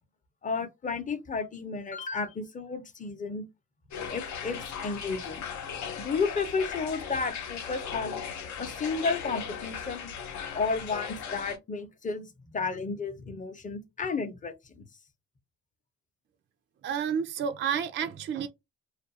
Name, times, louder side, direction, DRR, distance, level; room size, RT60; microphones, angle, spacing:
voice 1, 0.4-3.4 4.1-5.5 6.0-8.2 8.6-10.1 10.5-14.8, left 4 dB, 25° left, 0.7 m, -32 dB
sound 1, 3.9-11.6, left 7 dB, 70° left, 0.7 m, -38 dB
voice 2, 16.8-18.5, right 7 dB, 40° right, 0.4 m, -30 dB
2.5 x 2.2 x 2.6 m
cardioid pair, 90°, 30 cm